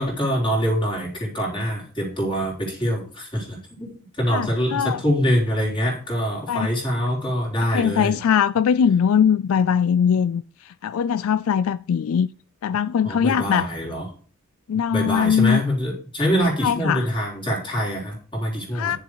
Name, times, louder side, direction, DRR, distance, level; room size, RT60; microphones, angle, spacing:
voice 1, 0.0-8.2 13.0-14.1 14.9-18.9, equal, 20° left, 3.7 m, -24 dB
voice 2, 4.3-5.0 6.5-6.7 7.6-12.3 12.6-13.7 14.7-15.6 16.6-17.1 18.7-19.0, left 7 dB, 70° left, 0.3 m, -21 dB
10.0 x 7.0 x 4.8 m
head